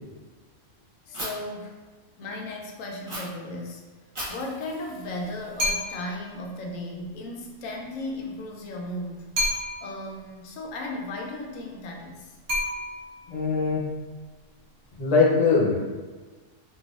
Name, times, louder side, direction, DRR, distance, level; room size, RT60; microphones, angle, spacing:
voice 1, 1.1-1.8 2.2-3.9 4.3-9.2 9.8-12.3, left 1 dB, 85° left, 1 dB, 1.0 m, -35 dB
Fire, 1.1-1.3 3.1-3.2 4.2-6.1, right 1 dB, 25° right, 0.8 m, -39 dB
sound 1, 5.6-6.2 9.4-10.1 12.5-13.3, left 1 dB, 65° right, 1.3 m, -29 dB
voice 2, 13.3-13.8 15.0-15.7, left 4 dB, 40° left, -4 dB, 0.7 m, -21 dB
3.9 x 2.7 x 2.4 m, 1.3 s
omnidirectional pair, 1.3 m